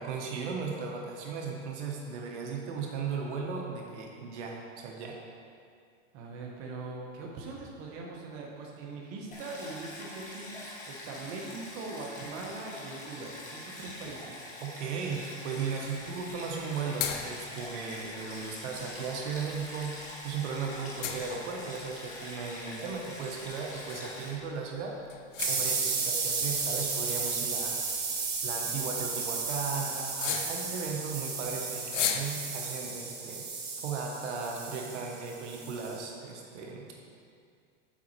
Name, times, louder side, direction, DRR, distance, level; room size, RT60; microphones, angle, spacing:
voice 1, 0.0-5.2 14.6-25.0 25.5-27.8 28.4-33.4 33.8-36.9, right 5 dB, 65° right, 0 dB, 1.1 m, -36 dB
voice 2, 6.1-14.4, right 3 dB, 40° right, -2 dB, 1.2 m, -41 dB
Stream, 9.3-24.3, left 1 dB, 20° left, 1.4 m, -44 dB
sound 1, 16.0-32.3, left 8 dB, 75° left, 0.8 m, -40 dB
sound 2, 25.4-36.0, right 5 dB, 10° right, 0.4 m, -34 dB
7.1 x 5.3 x 4.4 m, 2.3 s
supercardioid pair, 145°, 37 cm